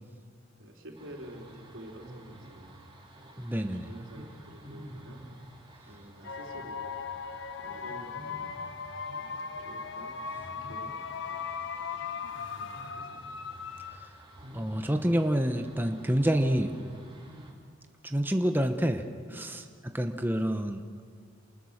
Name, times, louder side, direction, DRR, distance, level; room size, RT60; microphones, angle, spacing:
voice 1, 0.6-2.9 3.8-5.2 5.9-7.0 7.6-8.5 9.6-11.4 12.4-13.3 19.3-19.5, right 1 dB, 80° right, 1 dB, 3.9 m, -49 dB
sound 1, 0.9-17.5, right 1 dB, 25° right, 3.8 m, -50 dB
voice 2, 3.4-3.9 13.9-14.1 14.5-16.7 18.0-19.0 19.3-20.8, equal, 10° right, 6 dB, 1.0 m, -28 dB
sound 2, 6.2-14.3, left 5 dB, 65° left, 1.0 m, -38 dB
28.5 x 20.0 x 6.6 m, 2.1 s
head